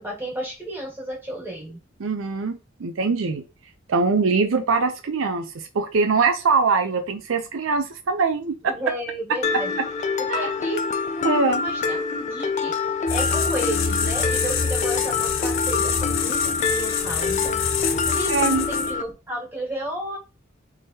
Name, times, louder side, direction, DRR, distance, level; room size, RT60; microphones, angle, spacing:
voice 1, 0.0-1.8 8.6-9.8 10.2-10.8 11.1-12.7 13.1-17.6 18.1-20.2, right 1 dB, 10° right, -4 dB, 1.9 m, -33 dB
voice 2, 2.0-3.4 3.9-5.5 5.7-8.7 10.3-10.5 11.2-11.6 18.3-18.7, right 4 dB, 80° right, 8 dB, 0.5 m, -22 dB
Mallet percussion, 9.4-19.0, left 4 dB, 35° left, 0.3 m, -26 dB
sound 1, 13.1-19.1, left 6 dB, 80° left, 0.6 m, -26 dB
3.6 x 3.3 x 2.7 m, 0.28 s
head